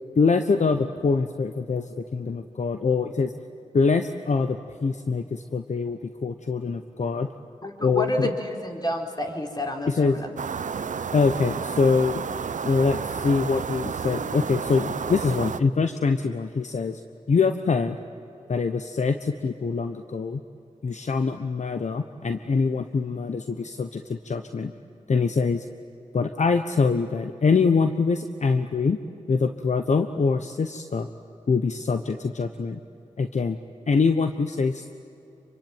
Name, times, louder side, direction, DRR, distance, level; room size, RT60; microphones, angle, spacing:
voice 1, 0.2-3.3 3.7-7.3 7.8-8.3 9.9-10.2 11.1-12.2 12.6-17.0 17.3-18.0 18.5-20.4 20.8-24.7 25.1-25.6 26.1-29.0 29.3-31.1 31.5-32.8 33.2-33.6 33.9-34.9, left 4 dB, 65° left, 8 dB, 1.1 m, -24 dB
voice 2, 7.6-10.3, left 1 dB, 30° left, 3 dB, 4.5 m, -29 dB
sound 1, 10.4-15.6, right 6 dB, 75° right, 0.8 m, -31 dB
27.0 x 24.0 x 9.2 m, 2.8 s
cardioid pair, 50°, 13 cm